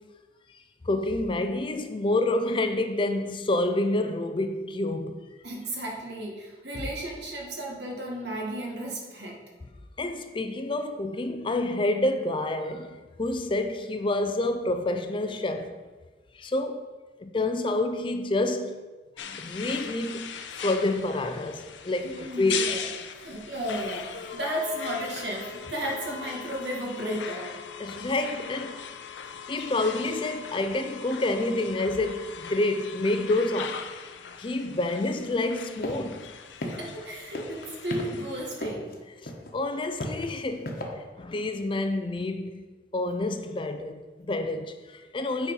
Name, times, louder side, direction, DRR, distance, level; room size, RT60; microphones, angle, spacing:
voice 1, 0.8-5.3 6.7-6.8 10.0-15.8 16.3-16.9 17.2-18.8 19.2-22.8 27.8-28.9 29.5-33.8 34.4-36.2 39.2-40.7 41.2-42.6 42.9-45.5, left 2 dB, 30° left, 0.4 m, -28 dB
voice 2, 5.4-9.4 22.0-22.9 23.2-27.5 36.6-38.9, right 1 dB, 70° right, 1.7 m, -34 dB
sound 1, 19.2-38.7, left 7 dB, 90° left, 0.5 m, -39 dB
sound 2, 35.8-36.0 36.2-36.3 36.6-37.0 37.3-38.0 38.6-39.0 39.3-39.5 40.0-40.8, left 1 dB, 55° left, 1.1 m, -33 dB
8.2 x 4.3 x 5.3 m
head